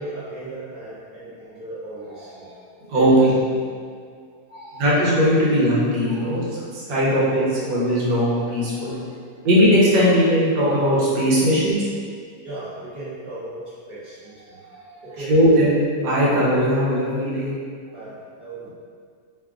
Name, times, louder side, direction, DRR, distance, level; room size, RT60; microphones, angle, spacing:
voice 1, 0.0-3.3 4.5-4.8 6.1-6.2 6.9-7.2 8.6-9.0 9.3-9.4 12.4-15.3 17.9-18.7, right 1 dB, 45° right, -10 dB, 0.8 m, -37 dB
voice 2, 2.9-3.3 4.7-9.0 9.4-11.8 15.2-17.5, equal, 80° right, -7 dB, 1.6 m, -19 dB
3.5 x 2.3 x 3.6 m, 2.1 s
omnidirectional pair, 2.0 m